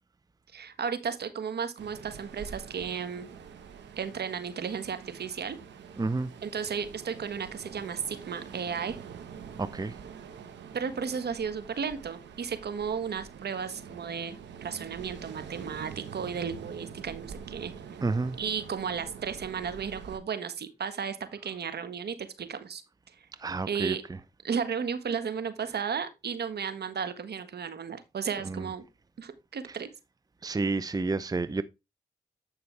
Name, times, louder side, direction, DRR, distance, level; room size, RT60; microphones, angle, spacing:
voice 1, 0.5-3.3 4.0-5.6 6.4-9.0 10.7-17.7 18.4-21.2 21.4-22.8 23.7-24.0 24.4-28.8 29.2-29.9, right 6 dB, 65° right, 1.4 m, -34 dB
Ocean, 1.8-20.2, right 7 dB, 85° right, 1.3 m, -45 dB
voice 2, 6.0-6.3 9.6-9.9 18.0-18.4 23.4-23.9 28.5-28.6 30.4-31.6, right 3 dB, 20° right, 0.6 m, -29 dB
9.4 x 5.4 x 3.3 m
supercardioid pair, 40°, 18 cm